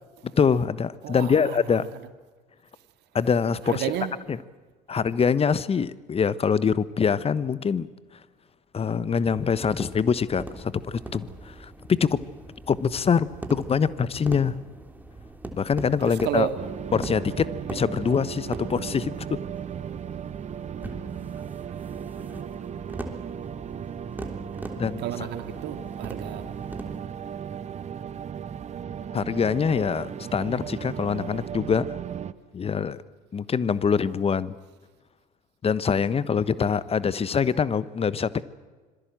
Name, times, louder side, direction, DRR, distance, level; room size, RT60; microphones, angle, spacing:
voice 1, 0.4-1.9 3.1-3.9 4.3-4.4 4.9-7.9 8.7-12.2 12.7-14.6 15.5-16.5 16.9-19.4 24.8-25.0 29.1-32.0 32.5-33.0 33.3-34.5 35.6-38.4, left 6 dB, 30° left, 1.2 m, -24 dB
voice 2, 1.0-1.6 3.6-4.2 16.0-16.7 25.0-26.4, right 11 dB, 55° right, 2.2 m, -31 dB
sound 1, 9.1-27.0, right 2 dB, 10° right, 3.4 m, -42 dB
sound 2, 16.6-32.3, right 8 dB, 35° right, 1.1 m, -36 dB
26.0 x 22.0 x 7.6 m
figure-of-eight pair, 60°, 21 cm